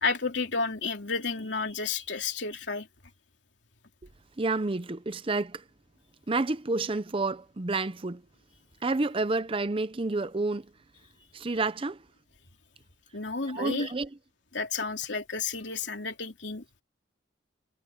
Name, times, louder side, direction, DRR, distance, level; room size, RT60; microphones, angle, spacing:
voice 1, 0.0-2.9 13.1-13.9 14.5-16.8, left 4 dB, 70° left, 3.1 m, -31 dB
voice 2, 4.4-5.6 6.3-8.2 8.8-10.7 11.3-12.0 13.4-14.1, right 3 dB, 30° right, 0.6 m, -29 dB
head